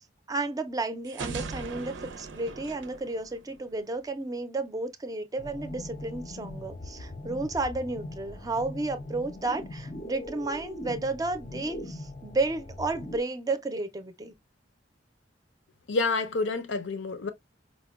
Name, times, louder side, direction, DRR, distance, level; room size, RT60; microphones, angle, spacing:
voice 1, 0.3-14.3, right 2 dB, 20° right, 0.5 m, -32 dB
sound 1, 1.0-3.9, right 4 dB, 90° right, 0.6 m, -39 dB
sound 2, 5.4-13.2, left 1 dB, 30° left, 0.5 m, -41 dB
voice 2, 15.9-17.3, left 3 dB, 80° left, 0.6 m, -28 dB
4.8 x 2.2 x 2.2 m
head